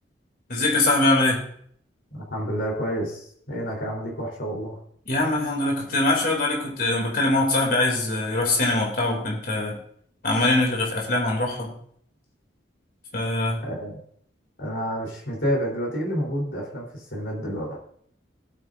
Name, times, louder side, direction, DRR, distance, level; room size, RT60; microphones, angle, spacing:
voice 1, 0.5-1.4 5.1-9.8 10.2-11.7 13.1-13.6, left 2 dB, 50° left, -1 dB, 2.8 m, -23 dB
voice 2, 2.1-4.8 13.6-14.0 14.6-17.8, equal, 80° left, -2 dB, 3.7 m, -29 dB
17.5 x 8.9 x 2.6 m, 0.64 s
head